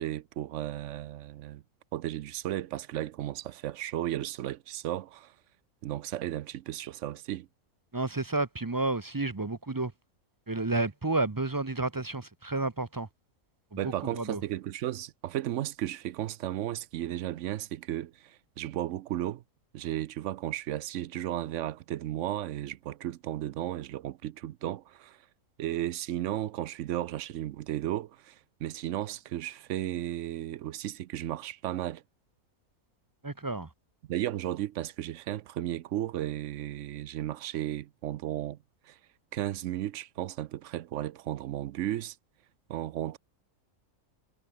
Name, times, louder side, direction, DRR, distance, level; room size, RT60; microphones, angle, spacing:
voice 1, 0.0-1.6 1.9-5.3 5.8-7.5 13.8-19.4 19.7-25.2 25.6-32.0 34.1-38.6 38.8-39.0 39.3-42.2 42.7-43.2, right 13 dB, 65° right, 0.8 m, -34 dB
voice 2, 7.9-9.9 10.5-13.1 13.7-14.4 33.2-33.7, right 2 dB, 20° right, 0.5 m, -31 dB
omnidirectional pair, 1.5 m